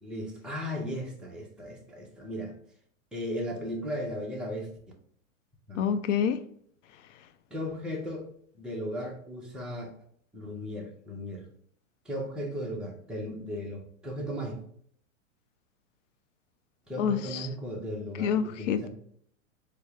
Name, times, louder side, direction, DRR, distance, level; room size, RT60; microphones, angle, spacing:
voice 1, 0.0-2.5 3.1-4.7 5.7-5.8 7.5-8.3 8.5-9.9 10.3-11.5 12.1-14.6 16.9-18.9, equal, ahead, 0.5 m, -36 dB
voice 2, 5.7-6.4 17.0-17.5 18.2-18.9, left 7 dB, 65° left, 0.5 m, -27 dB
4.3 x 2.0 x 3.2 m
hypercardioid pair, 110°, 40 cm